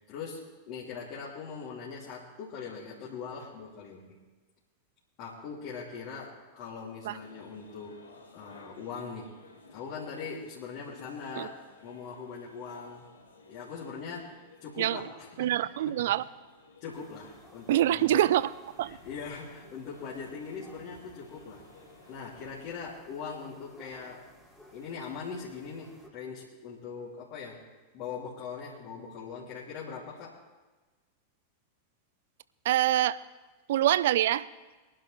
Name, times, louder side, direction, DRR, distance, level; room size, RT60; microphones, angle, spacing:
voice 1, 0.1-4.2 5.2-8.0 8.3-9.3 9.7-13.1 13.5-16.1 16.8-18.2 18.8-21.6 22.1-24.3 24.7-27.7 27.9-30.4, left 5 dB, 45° left, -6 dB, 3.1 m, -41 dB
sound 1, 7.2-22.7, left 2 dB, 75° left, 3.1 m, -56 dB
voice 2, 15.4-16.2 17.7-18.5 18.8-19.0 32.7-33.2 33.7-34.5, right 13 dB, 55° right, 18 dB, 0.4 m, -25 dB
sound 2, 16.9-26.1, equal, ahead, 3.1 m, -57 dB
23.0 x 11.5 x 3.4 m, 1.3 s
figure-of-eight pair, 90°, 0 cm